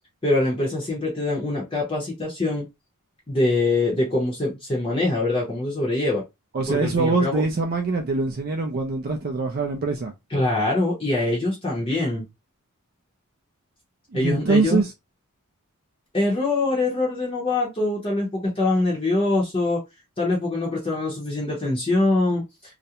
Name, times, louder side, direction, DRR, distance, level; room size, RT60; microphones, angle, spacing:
voice 1, 0.2-2.7 3.3-6.2 6.7-7.4 10.3-12.3 14.1-14.8 16.1-19.8 20.2-22.4, left 2 dB, 25° left, 0.7 m, -23 dB
voice 2, 6.5-10.1 14.1-14.9, right 3 dB, 45° right, 0.4 m, -23 dB
2.4 x 2.1 x 2.8 m
head